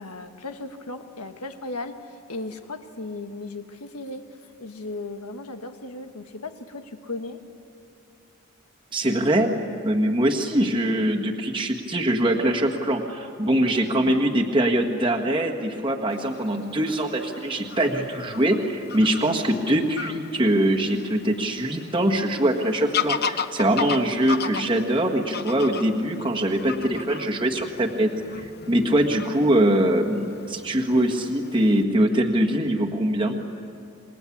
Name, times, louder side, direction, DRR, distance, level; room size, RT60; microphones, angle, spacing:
voice 1, 0.0-4.3 4.6-7.4, left 2 dB, 85° left, 7 dB, 1.6 m, -36 dB
voice 2, 8.9-9.5 9.8-28.1 28.4-33.4, right 1 dB, 20° right, 0 dB, 1.6 m, -23 dB
Fowl / Bird vocalization bird call bird song, 16.1-31.8, left 6 dB, 45° left, 0.8 m, -36 dB
28.0 x 22.0 x 8.6 m, 2.6 s
head